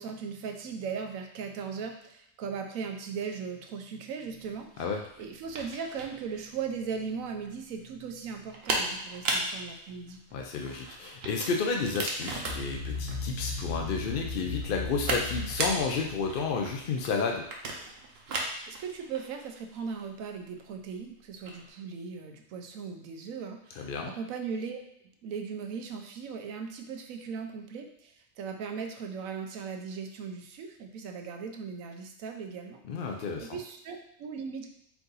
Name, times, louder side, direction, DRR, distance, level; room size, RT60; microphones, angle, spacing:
voice 1, 0.0-4.9 5.2-10.2 18.7-24.8 25.2-32.8 33.4-34.7, right 6 dB, 80° right, 4 dB, 1.1 m, -38 dB
sound 1, 4.3-21.7, right 2 dB, 55° right, 0.9 m, -37 dB
voice 2, 10.3-17.4 23.8-24.1 32.8-33.6, left 5 dB, 65° left, 2 dB, 0.5 m, -31 dB
sound 2, 12.4-17.1, left 3 dB, 50° left, 1.2 m, -37 dB
4.6 x 2.6 x 3.9 m, 0.76 s
omnidirectional pair, 1.4 m